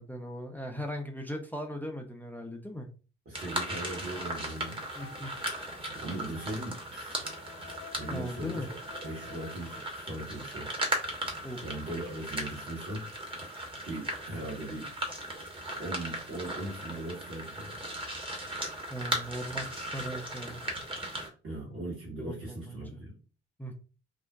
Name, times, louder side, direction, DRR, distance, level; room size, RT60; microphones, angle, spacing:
voice 1, 0.0-2.9 5.0-5.3 8.1-8.7 11.4-11.6 18.9-20.6 22.2-23.0 23.6-23.7, equal, 5° left, 3 dB, 0.5 m, -38 dB
voice 2, 3.2-4.8 6.0-7.4 7.9-8.7 9.0-10.7 11.6-13.1 13.8-14.9 15.8-17.8 21.4-23.1, right 1 dB, 40° right, -4 dB, 1.2 m, -39 dB
sound 1, 3.3-21.3, right 1 dB, 15° right, 1.0 m, -37 dB
sound 2, 4.4-10.1, left 6 dB, 50° left, 0.6 m, -52 dB
2.4 x 2.1 x 3.5 m, 0.35 s
figure-of-eight pair, 45°, 35 cm